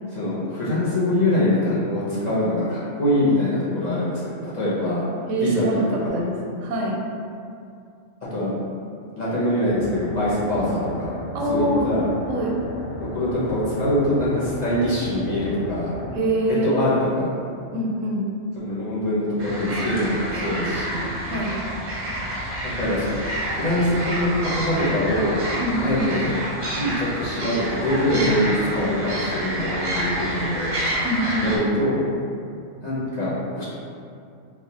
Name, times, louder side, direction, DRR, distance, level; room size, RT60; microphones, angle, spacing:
voice 1, 0.1-5.0 5.4-5.8 6.1-6.2 8.3-8.5 9.2-11.1 11.5-12.1 13.1-15.9 16.6-17.3 18.6-21.1 22.8-23.1 23.5-25.4 25.8-26.3 26.7-30.7 31.4-32.1 32.8-33.7, left 1 dB, 45° left, -10 dB, 0.7 m, -23 dB
voice 2, 5.3-7.0 11.3-11.9 12.3-12.6 16.1-16.8 17.7-18.3 21.2-21.6 25.6-26.1 31.0-31.6, right 1 dB, 90° right, -2 dB, 0.9 m, -24 dB
sound 1, 9.7-16.2, left 1 dB, 70° left, 1.1 m, -35 dB
sound 2, 19.4-31.6, right 1 dB, 45° right, 0.6 m, -28 dB
3.4 x 2.2 x 2.8 m, 2.5 s
omnidirectional pair, 1.3 m